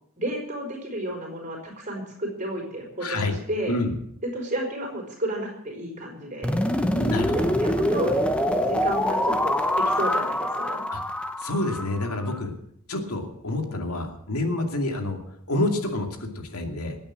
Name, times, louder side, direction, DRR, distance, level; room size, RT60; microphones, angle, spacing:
voice 1, 0.2-3.8 4.3-6.6 7.3-8.1 8.5-10.8, right 1 dB, 35° right, 1 dB, 5.0 m, -32 dB
voice 2, 3.0-3.3 3.7-3.9 6.9-7.6 10.9-11.0 11.4-12.5 12.9-15.2 15.5-17.0, left 2 dB, 85° left, 4 dB, 2.5 m, -28 dB
sound 1, 6.4-12.4, left 1 dB, 5° left, 0.9 m, -25 dB
19.5 x 8.8 x 7.6 m, 0.71 s
head